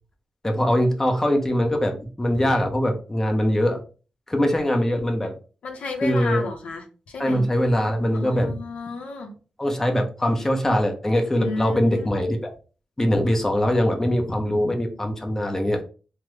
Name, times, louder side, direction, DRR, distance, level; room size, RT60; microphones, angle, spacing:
voice 1, 0.4-3.8 4.3-5.3 6.0-6.4 7.2-8.5 9.6-12.5 13.0-15.8, equal, 20° left, 3 dB, 0.8 m, -22 dB
voice 2, 5.6-7.4 8.1-9.4 11.4-12.1, left 3 dB, 80° left, 3 dB, 0.6 m, -32 dB
3.3 x 2.0 x 3.2 m, 0.36 s
cardioid pair, 65°, 2 cm